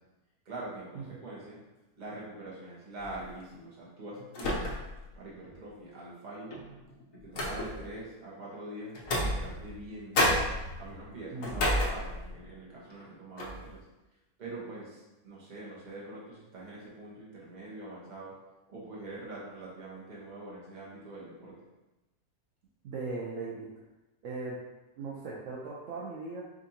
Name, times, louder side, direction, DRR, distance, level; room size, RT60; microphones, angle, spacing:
voice 1, 0.4-1.6 1.9-4.8 5.1-6.5 7.1-10.4 10.8-13.8 14.4-18.3 18.7-21.6, right 2 dB, 35° right, -6 dB, 1.0 m, -44 dB
sound 1, 3.0-3.3 4.3-5.0 5.4-5.5 6.5-7.9 8.9-9.9 10.1-12.5 12.9-13.1 13.4-13.7, left 1 dB, 60° left, 1.1 m, -31 dB
voice 2, 11.3-11.6 22.8-23.7 24.2-24.6 25.0-26.4, right 3 dB, 65° right, -5 dB, 0.9 m, -38 dB
5.0 x 2.6 x 2.8 m, 1.0 s
omnidirectional pair, 1.7 m